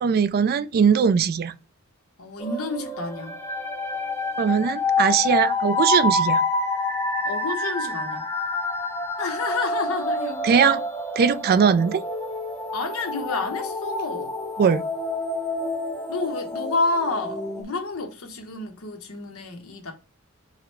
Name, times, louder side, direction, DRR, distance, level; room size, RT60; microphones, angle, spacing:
voice 1, 0.0-1.5 4.4-6.4 10.4-10.8 11.2-12.0 14.6-14.8, right 6 dB, 45° right, 0.3 m, -20 dB
voice 2, 2.2-3.3 7.2-8.3 9.2-10.8 12.7-14.3 16.1-19.9, left 3 dB, 75° left, 1.0 m, -29 dB
sound 1, 2.4-17.6, left 2 dB, 10° left, 0.7 m, -28 dB
4.8 x 2.1 x 4.4 m
head